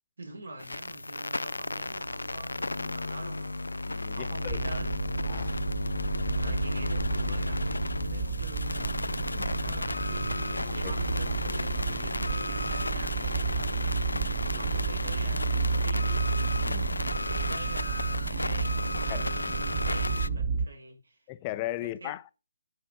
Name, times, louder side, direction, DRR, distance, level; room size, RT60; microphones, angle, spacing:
voice 1, 0.2-3.7 4.1-5.0 6.4-16.3 17.0-21.2 21.8-22.1, right 2 dB, 70° right, 4.6 m, -45 dB
sound 1, 0.6-20.3, left 2 dB, 85° left, 0.4 m, -33 dB
voice 2, 3.9-4.6 5.3-5.6 6.4-6.5 9.3-9.6 10.7-11.0 14.1-14.4 16.6-17.0 19.1-19.2 21.3-22.3, left 16 dB, 25° left, 0.7 m, -38 dB
sound 2, 4.5-20.7, right 5 dB, 30° right, 1.0 m, -32 dB
sound 3, 10.0-16.4, equal, 10° right, 1.6 m, -54 dB
11.5 x 5.5 x 5.5 m
figure-of-eight pair, 145°, 0 cm